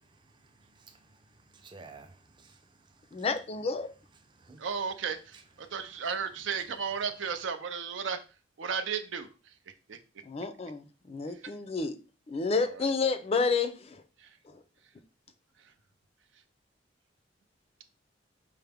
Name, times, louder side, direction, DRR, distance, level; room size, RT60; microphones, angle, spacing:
voice 1, 0.2-3.2 4.3-4.6 5.6-5.7, right 4 dB, 25° right, 0.5 m, -54 dB
voice 2, 3.1-3.9 10.2-12.0 12.3-14.0 14.5-14.6, left 4 dB, 30° left, 0.3 m, -30 dB
voice 3, 4.6-8.2 8.6-9.3 9.9-10.0 11.4-11.5 12.6-12.9 14.2-14.3, right 6 dB, 85° right, 0.5 m, -34 dB
5.6 x 2.0 x 3.4 m
head